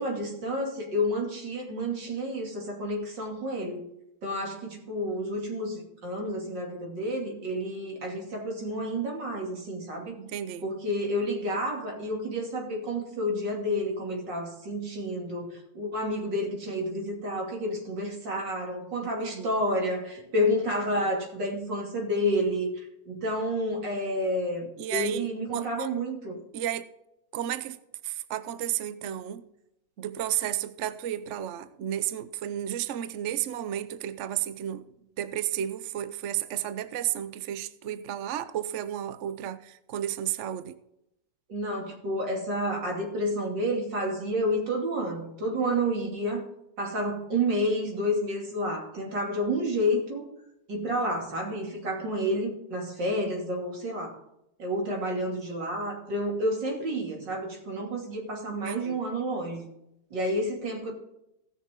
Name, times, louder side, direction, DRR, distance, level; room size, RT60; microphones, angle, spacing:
voice 1, 0.0-3.8 4.2-10.2 10.6-26.4 41.5-46.4 46.8-50.2 50.7-54.2 54.6-59.7 60.1-60.9, equal, 80° right, 0 dB, 3.4 m, -30 dB
voice 2, 10.2-10.6 19.0-19.5 24.8-25.9 26.5-26.9 27.3-27.8 28.0-29.4 30.0-34.9 35.2-40.8 58.5-59.0, right 11 dB, 60° right, 13 dB, 0.8 m, -32 dB
17.0 x 6.7 x 3.7 m, 0.83 s
omnidirectional pair, 1.9 m